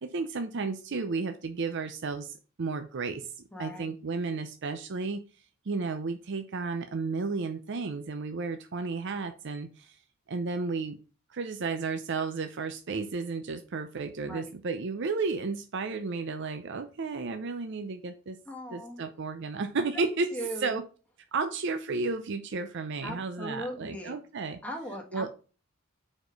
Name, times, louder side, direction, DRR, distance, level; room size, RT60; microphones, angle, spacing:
voice 1, 0.0-3.3 3.6-5.2 5.7-10.0 10.3-11.0 11.3-18.4 18.7-20.8 21.3-24.6 25.1-25.3, right 4 dB, 60° right, 0.6 m, -33 dB
voice 2, 3.5-3.9 14.3-14.5 18.4-19.0 19.9-20.0 20.3-20.8 23.0-24.1 24.6-25.3, equal, 5° left, 1.3 m, -39 dB
4.9 x 4.3 x 5.1 m
head